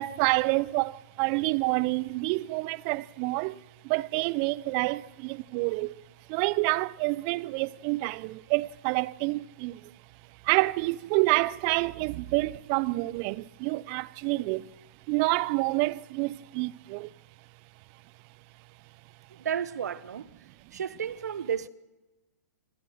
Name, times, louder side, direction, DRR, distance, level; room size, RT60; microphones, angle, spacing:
voice 1, 0.0-5.9 6.3-9.9 10.4-14.7 15.1-17.1, right 22 dB, 35° right, 0.6 m, -28 dB
voice 2, 19.3-20.3 20.7-21.7, right 8 dB, 70° right, 1.2 m, -32 dB
26.0 x 16.5 x 6.4 m
hypercardioid pair, 120°, 9 cm